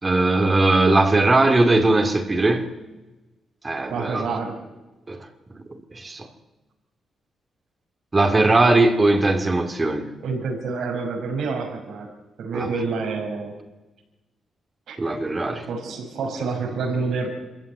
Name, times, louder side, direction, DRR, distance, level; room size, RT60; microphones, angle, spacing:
voice 1, 0.0-2.7 3.6-4.3 5.1-5.3 5.9-6.3 8.1-10.1 12.5-12.7 15.0-15.7, right 2 dB, 30° right, 2.6 m, -19 dB
voice 2, 3.9-4.6 10.2-13.5 14.9-15.0 15.7-17.3, right 4 dB, 80° right, 5.6 m, -28 dB
25.0 x 14.5 x 9.5 m
cardioid pair, 75°, 0 cm